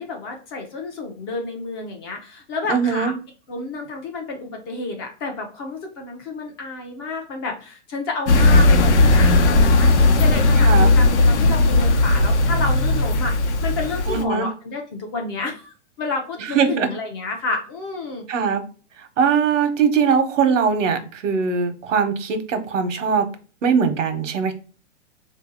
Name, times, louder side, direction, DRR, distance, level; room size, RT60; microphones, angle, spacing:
voice 1, 0.0-3.1 3.5-9.9 10.2-18.3, left 3 dB, 20° left, 3 dB, 0.4 m, -30 dB
voice 2, 2.7-3.1 10.6-10.9 14.1-14.5 16.5-16.9 18.3-18.6 19.2-23.3 23.6-24.5, right 6 dB, 85° right, 8 dB, 1.0 m, -20 dB
sound 1, 8.3-14.2, left 2 dB, 70° left, 0.8 m, -16 dB
3.8 x 2.7 x 3.6 m, 0.36 s
hypercardioid pair, 155°, 36 cm